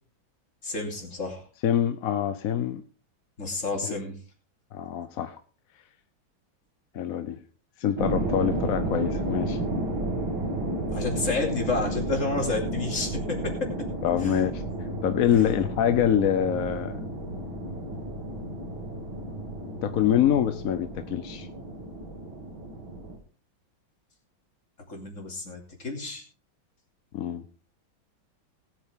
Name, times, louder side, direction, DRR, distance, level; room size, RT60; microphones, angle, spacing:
voice 1, 0.6-1.4 3.4-4.2 10.9-13.7 14.2-14.4 15.3-15.5 24.9-26.2, left 3 dB, 35° left, 3.3 m, -30 dB
voice 2, 1.6-2.8 3.9-4.0 4.7-5.4 6.9-7.4 7.8-9.6 14.0-14.6 15.0-17.0 19.8-21.5 27.1-27.4, left 9 dB, 60° left, 0.9 m, -25 dB
sound 1, 8.0-23.2, right 2 dB, 75° right, 3.5 m, -32 dB
sound 2, 14.7-20.7, left 4 dB, 30° right, 3.2 m, -42 dB
19.0 x 8.6 x 3.6 m
omnidirectional pair, 2.2 m